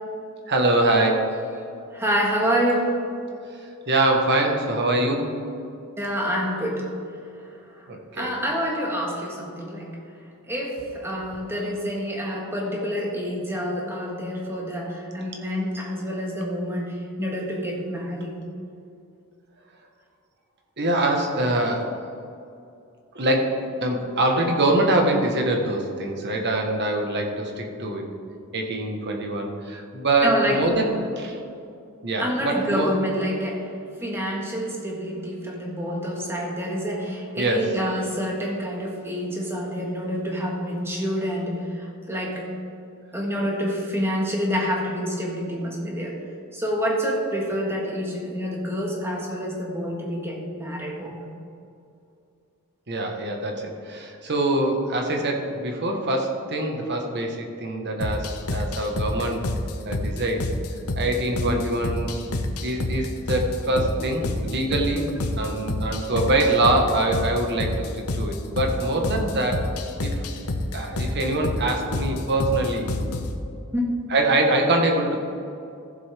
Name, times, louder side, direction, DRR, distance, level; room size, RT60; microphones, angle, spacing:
voice 1, 0.5-1.3 3.9-5.3 7.9-8.3 20.8-21.9 23.1-28.0 28.5-31.4 32.0-32.9 37.4-37.6 52.9-59.4 59.8-60.4 60.9-62.1 62.6-69.7 70.0-70.1 70.7-72.9 74.1-75.2, right 2 dB, 50° right, 2 dB, 1.4 m, -24 dB
voice 2, 1.9-3.0 6.0-6.9 7.8-7.9 8.1-9.9 10.5-18.3 30.2-30.6 32.2-33.7 34.0-42.5 43.1-46.2 46.5-51.2 61.5-61.6 65.5-65.6 73.7-73.9, equal, 10° right, -2 dB, 1.7 m, -27 dB
sound 1, 58.0-73.4, left 1 dB, 85° left, 0.9 m, -29 dB
15.0 x 7.4 x 3.5 m, 2.5 s
head